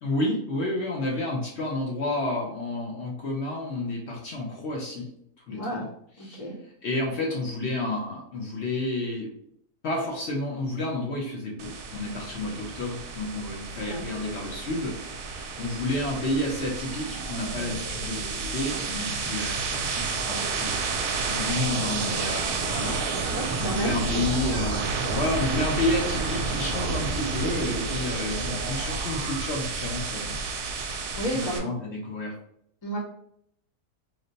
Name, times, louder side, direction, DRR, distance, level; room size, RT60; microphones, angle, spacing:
voice 1, 0.0-5.1 5.5-5.9 6.2-6.5 6.8-9.3 9.8-23.3 23.6-30.4 31.3-32.3, left 2 dB, 60° left, -1 dB, 0.7 m, -30 dB
voice 2, 5.5-5.8 6.2-6.5 13.8-14.0 23.3-24.2 31.1-31.6 32.8-33.0, right 1 dB, 25° left, -4 dB, 0.8 m, -32 dB
sound 1, 11.6-31.6, right 4 dB, 75° right, 1.1 m, -30 dB
3.1 x 2.0 x 3.9 m, 0.70 s
omnidirectional pair, 1.7 m